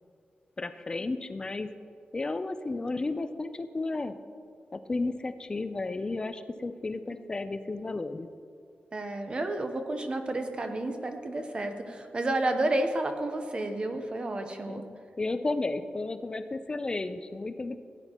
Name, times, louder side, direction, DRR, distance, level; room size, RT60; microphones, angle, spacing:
voice 1, 0.6-1.7 2.1-4.1 4.7-8.3 14.7-14.8 15.2-17.8, left 3 dB, 25° left, 10 dB, 0.4 m, -33 dB
voice 2, 8.9-14.9, right 2 dB, 30° right, 6 dB, 0.8 m, -31 dB
16.0 x 9.7 x 2.9 m, 2.4 s
wide cardioid pair, 180°, 3 cm